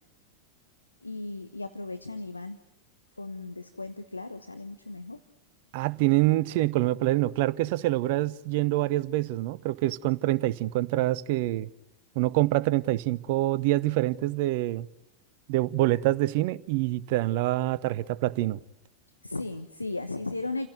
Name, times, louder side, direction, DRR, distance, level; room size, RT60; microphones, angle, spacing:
voice 1, 1.0-2.6 3.2-5.2 19.2-20.7, left 2 dB, 80° left, 1.1 m, -36 dB
voice 2, 5.7-11.7 12.1-14.9 15.5-18.6, right 17 dB, 50° right, 0.9 m, -26 dB
29.0 x 16.5 x 9.6 m
figure-of-eight pair, 90°, 0 cm